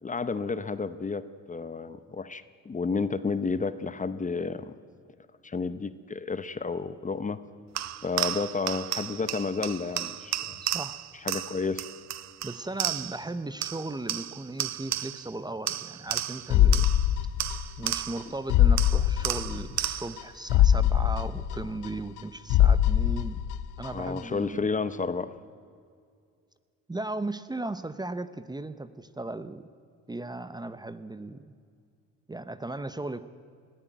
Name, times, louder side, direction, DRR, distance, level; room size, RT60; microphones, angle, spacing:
voice 1, 0.0-4.7 5.4-7.4 8.0-10.4 11.2-11.8 23.9-25.3, left 4 dB, 25° left, 13 dB, 0.8 m, -31 dB
sound 1, 7.8-13.3 13.6-15.3 15.7-18.4 18.8-20.3, right 12 dB, 65° right, 0.7 m, -33 dB
voice 2, 10.6-11.0 12.4-16.9 17.8-23.4 23.8-24.7 26.9-29.7 30.1-31.5 32.3-33.3, right 2 dB, 15° right, 13 dB, 0.8 m, -36 dB
sound 2, 16.5-17.9 18.2-18.3 18.5-19.9 20.2-20.3 20.5-22.2 22.5-23.9 24.2-24.3, left 10 dB, 85° left, 0.6 m, -22 dB
20.5 x 14.5 x 9.1 m, 2.2 s
cardioid pair, 90°, 30 cm